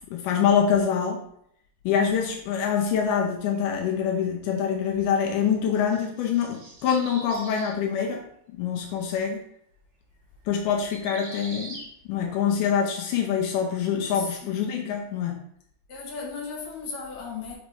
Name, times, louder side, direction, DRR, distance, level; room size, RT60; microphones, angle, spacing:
voice 1, 0.1-1.2 1.9-8.2 8.6-9.4 10.5-11.8 12.1-15.4, left 7 dB, 85° left, 2.4 m, -25 dB
sound 1, 3.5-3.8 5.6-7.8 10.7-11.9, right 1 dB, 30° right, 1.5 m, -43 dB
voice 2, 14.1-14.7 15.9-17.5, left 5 dB, 65° left, 2.6 m, -36 dB
6.0 x 3.1 x 5.2 m
omnidirectional pair, 3.6 m